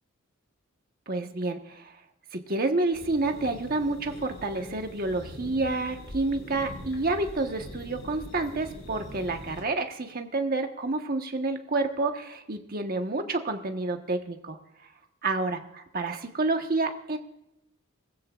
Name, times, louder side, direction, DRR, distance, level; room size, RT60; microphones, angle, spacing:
voice 1, 1.1-1.9 2.3-14.6 15.2-17.2, right 2 dB, 45° right, 5 dB, 1.3 m, -29 dB
sound 1, 2.9-9.6, left 1 dB, 65° left, 4.1 m, -43 dB
22.5 x 15.5 x 2.5 m, 0.89 s
head